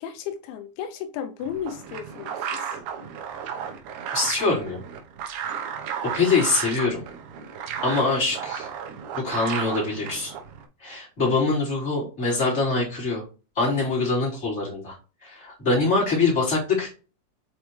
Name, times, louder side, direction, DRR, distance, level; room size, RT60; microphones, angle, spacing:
voice 1, 0.0-2.7, left 8 dB, 85° left, 3.0 m, -34 dB
sound 1, 1.4-10.7, right 7 dB, 75° right, 2.5 m, -34 dB
voice 2, 4.1-4.8 6.1-7.0 7.8-8.7 9.1-10.3 10.8-13.2 13.5-14.9 15.2-16.9, left 3 dB, 15° left, 3.3 m, -24 dB
7.0 x 5.3 x 3.1 m
omnidirectional pair, 5.3 m